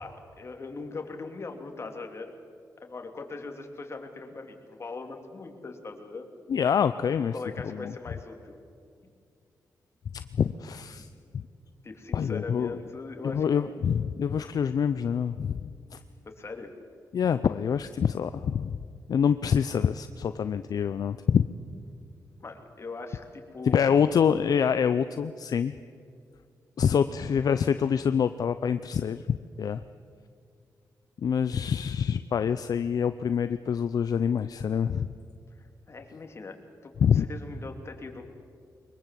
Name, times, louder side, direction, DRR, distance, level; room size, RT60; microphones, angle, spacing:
voice 1, 0.0-2.3 2.8-6.2 7.3-8.6 11.8-13.8 16.4-16.7 22.4-23.8 27.1-27.2 31.5-31.7 35.6-38.2, left 3 dB, 40° left, 4 dB, 2.8 m, -40 dB
voice 2, 6.5-7.3 7.6-7.9 10.1-11.1 11.3-11.4 12.1-12.8 13.2-16.0 17.1-18.8 19.1-21.5 23.7-25.7 26.8-29.8 31.2-35.1 37.0-37.3, left 7 dB, 65° left, 11 dB, 0.6 m, -26 dB
22.5 x 22.0 x 7.6 m, 2.3 s
cardioid pair, 85°, 7 cm